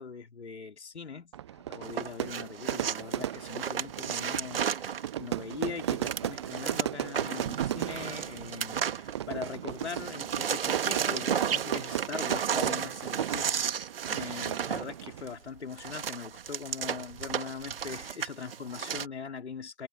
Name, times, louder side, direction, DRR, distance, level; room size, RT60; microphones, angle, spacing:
voice 1, 0.0-1.3 1.7-19.9, left 5 dB, 60° left, 3.4 m, -41 dB
Fire / Fireworks, 1.3-15.4, right 11 dB, 25° right, 0.7 m, -36 dB
sound 1, 1.8-9.5 9.8-19.1, right 8 dB, 50° right, 2.4 m, -33 dB
figure-of-eight pair, 130°, 38 cm